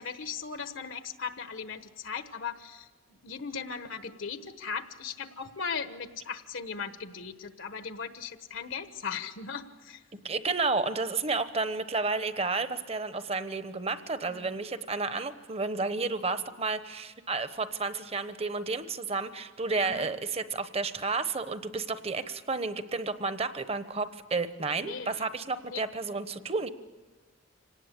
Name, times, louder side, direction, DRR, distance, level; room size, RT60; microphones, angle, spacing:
voice 1, 0.0-10.0 14.2-14.6 19.8-20.1 24.7-25.3 25.7-25.8, left 6 dB, 70° left, 10 dB, 1.2 m, -38 dB
voice 2, 10.1-26.7, right 3 dB, 30° right, 11 dB, 1.0 m, -31 dB
26.0 x 18.5 x 8.4 m, 1.4 s
head